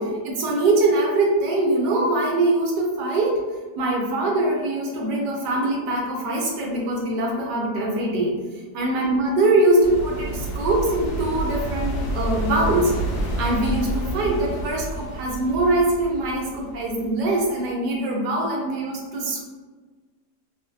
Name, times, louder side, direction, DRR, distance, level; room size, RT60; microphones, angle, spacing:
voice 1, 0.0-3.4 3.8-8.3 8.7-12.9 13.4-19.4, right 2 dB, 75° right, -2 dB, 1.3 m, -22 dB
sound 1, 9.8-17.4, right 1 dB, 90° left, 1.2 m, -29 dB
3.0 x 2.4 x 2.6 m, 1.4 s
omnidirectional pair, 1.8 m